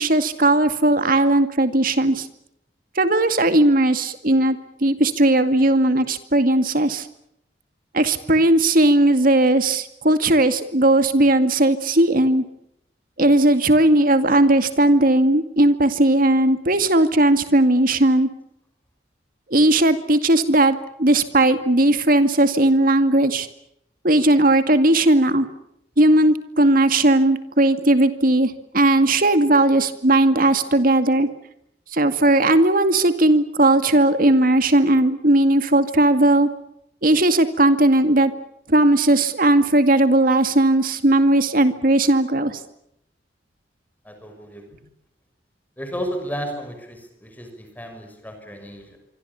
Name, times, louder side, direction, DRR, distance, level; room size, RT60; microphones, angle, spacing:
voice 1, 0.0-2.3 3.0-7.1 7.9-12.4 13.2-18.3 19.5-23.5 24.0-25.5 26.0-31.3 31.9-36.5 37.0-38.3 38.7-42.6, right 1 dB, 50° right, 10 dB, 2.3 m, -17 dB
voice 2, 44.0-44.7 45.8-49.0, equal, 10° left, 5 dB, 6.4 m, -33 dB
26.0 x 25.0 x 7.2 m, 0.77 s
head